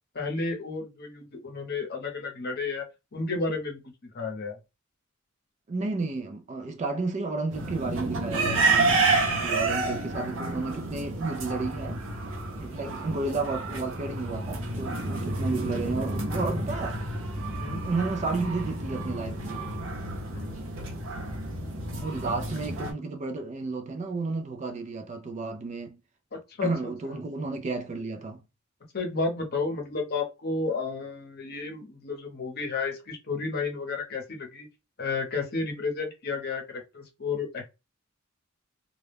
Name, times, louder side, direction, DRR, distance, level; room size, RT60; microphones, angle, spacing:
voice 1, 0.1-2.9 3.1-4.6 9.9-10.0 17.6-17.8 20.3-20.5 26.6-26.7 27.1-27.2 28.9-34.7 35.0-37.7, left 4 dB, 50° left, 0.8 m, -32 dB
voice 2, 5.7-12.0 12.5-17.0 17.8-19.7 22.0-26.0 26.6-28.4, right 3 dB, 35° right, 0.4 m, -32 dB
sound 1, 7.5-22.9, right 2 dB, 75° right, 0.7 m, -30 dB
2.3 x 2.1 x 3.3 m
head